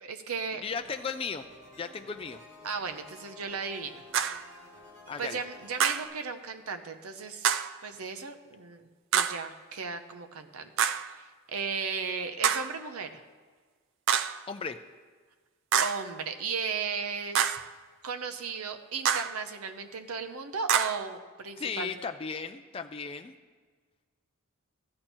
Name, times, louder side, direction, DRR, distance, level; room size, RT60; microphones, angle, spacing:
voice 1, 0.0-0.6 2.6-4.0 5.2-7.5 7.8-8.9 9.1-13.2 15.8-17.6 18.0-22.0, right 5 dB, 85° right, 8 dB, 0.7 m, -36 dB
voice 2, 0.6-1.5 1.8-2.4 5.1-5.4 14.5-14.8 21.6-23.3, left 5 dB, 25° left, 6 dB, 0.3 m, -35 dB
sound 1, 0.7-6.1, left 2 dB, 35° right, 4.1 m, -52 dB
sound 2, 4.1-4.5 5.8-6.1 7.4-7.8 9.1-9.5 10.8-11.1 12.4-12.8 14.1-14.4 15.7-16.1 17.3-17.7 19.0-19.4 20.7-21.1, right 8 dB, 60° right, 0.4 m, -27 dB
14.5 x 8.6 x 4.4 m, 1.5 s
head